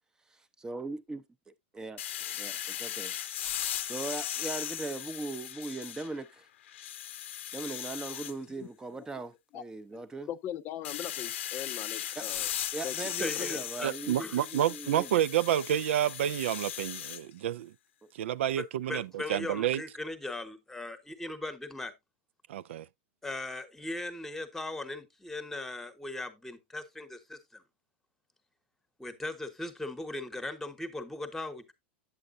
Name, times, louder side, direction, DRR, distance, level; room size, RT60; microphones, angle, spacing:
voice 1, 0.6-1.2 1.7-2.0 2.4-3.1 3.9-6.4 7.5-10.3 12.2-12.3 12.7-15.2, right 3 dB, 10° right, 0.6 m, -39 dB
sound 1, 2.0-6.3 6.7-8.3 10.8-17.2, left 11 dB, 80° left, 0.7 m, -37 dB
voice 2, 9.9-12.5 12.8-13.6, left 11 dB, 30° left, 0.5 m, -40 dB
voice 3, 13.2-13.9 14.2-14.4 18.6-21.9 23.2-27.6 29.0-31.7, left 2 dB, 5° left, 1.0 m, -38 dB
voice 4, 13.8-17.7 18.1-19.8 22.5-22.9, right 11 dB, 80° right, 0.4 m, -29 dB
8.6 x 7.7 x 2.5 m
supercardioid pair, 140°, 6 cm